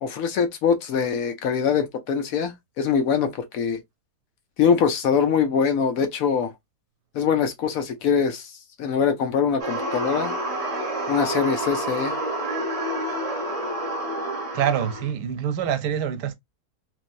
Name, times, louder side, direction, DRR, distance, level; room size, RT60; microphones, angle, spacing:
voice 1, 0.0-3.8 4.6-6.5 7.1-8.5 8.8-10.3 11.1-12.1, left 6 dB, 65° left, 1.0 m, -23 dB
sound 1, 9.6-15.1, right 1 dB, 25° right, 0.8 m, -28 dB
voice 2, 14.5-16.3, right 9 dB, 90° right, 1.3 m, -25 dB
3.2 x 2.5 x 2.5 m
omnidirectional pair, 1.7 m